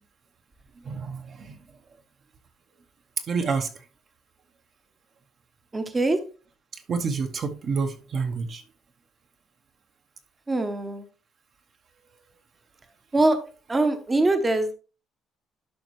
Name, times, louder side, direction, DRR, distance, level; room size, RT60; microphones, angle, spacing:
voice 1, 0.8-1.6 3.3-3.7 6.7-8.6, right 5 dB, 40° right, 0.9 m, -28 dB
voice 2, 5.7-6.2 10.5-11.0 13.1-13.4 13.7-14.7, right 2 dB, 15° right, 0.8 m, -23 dB
11.5 x 5.2 x 3.1 m
cardioid pair, 140°, 0 cm